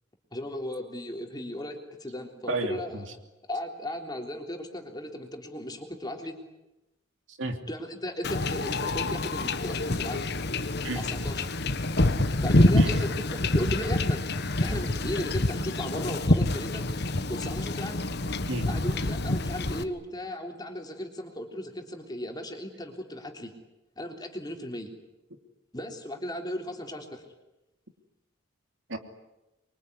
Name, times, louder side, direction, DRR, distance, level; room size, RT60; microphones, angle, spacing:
voice 1, 0.3-3.0 3.5-6.4 7.7-10.3 11.0-11.4 12.4-14.2 14.6-16.9 17.3-18.1 18.7-23.5 24.0-24.9 25.7-27.2, left 1 dB, 20° left, 3 dB, 3.6 m, -36 dB
voice 2, 2.5-3.0 7.3-7.6 10.8-11.0 12.8-12.9 18.5-18.7 28.9-29.0, right 2 dB, 70° right, 6 dB, 3.0 m, -32 dB
Wind / Ocean / Boat Water vehicle, 8.2-19.8, left 2 dB, 55° left, 1.4 m, -27 dB
25.5 x 24.0 x 9.8 m, 0.97 s
head